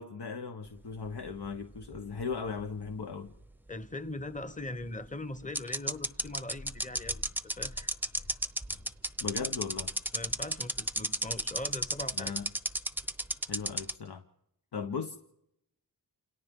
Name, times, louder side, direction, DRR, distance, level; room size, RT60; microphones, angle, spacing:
voice 1, 0.0-3.3 9.2-9.9 12.1-12.5 13.5-14.2 14.7-15.2, left 5 dB, 70° left, 6 dB, 1.1 m, -37 dB
sound 1, 1.1-2.6 2.9-3.0 4.8-4.9 5.6-13.9, right 1 dB, 5° right, 0.7 m, -32 dB
voice 2, 3.7-7.9 10.1-12.3, left 2 dB, 20° left, 13 dB, 1.1 m, -40 dB
Purr, 6.1-12.4 13.1-13.2, left 1 dB, 50° left, 4.7 m, -52 dB
29.0 x 28.0 x 3.7 m, 0.80 s
wide cardioid pair, 80°, 41 cm